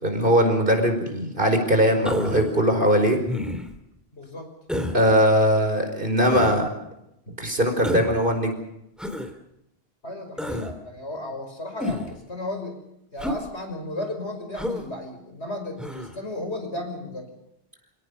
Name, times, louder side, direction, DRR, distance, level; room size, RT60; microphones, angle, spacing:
voice 1, 0.0-3.2 4.9-6.7 7.4-8.5, equal, 50° right, 4 dB, 5.1 m, -20 dB
Human voice, 2.0-2.5 3.3-3.8 4.7-5.0 6.2-6.6 7.8-8.2 9.0-9.3 10.4-10.7 11.8-12.2 13.2-13.4 14.5-14.8 15.8-16.1, left 1 dB, ahead, 2.8 m, -29 dB
voice 2, 4.1-4.5 7.3-7.4 10.0-12.8 13.1-17.3, left 1 dB, 80° left, 4 dB, 6.0 m, -34 dB
29.0 x 17.5 x 6.7 m, 0.83 s
omnidirectional pair, 1.1 m